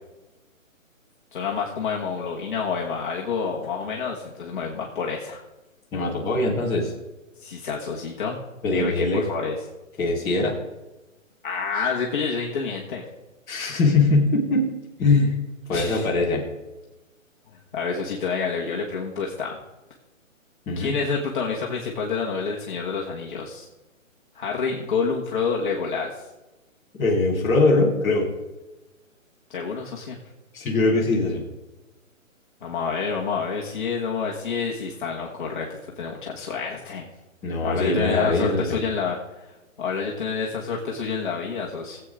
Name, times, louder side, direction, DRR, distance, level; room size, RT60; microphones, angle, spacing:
voice 1, 1.3-5.4 7.4-8.4 8.7-9.5 11.4-13.0 15.7-16.1 17.7-19.6 20.8-23.7 24.3-26.3 29.5-30.2 32.6-37.1 37.6-42.0, left 5 dB, 35° left, -3 dB, 1.5 m, -28 dB
voice 2, 5.9-6.9 8.6-9.2 10.0-10.5 13.5-14.7 15.0-15.3 15.7-16.4 20.7-21.0 26.9-28.3 30.5-31.4 37.4-38.8, left 2 dB, 5° left, -8 dB, 1.1 m, -21 dB
17.5 x 8.2 x 3.7 m, 1.1 s
hypercardioid pair, 165°, 41 cm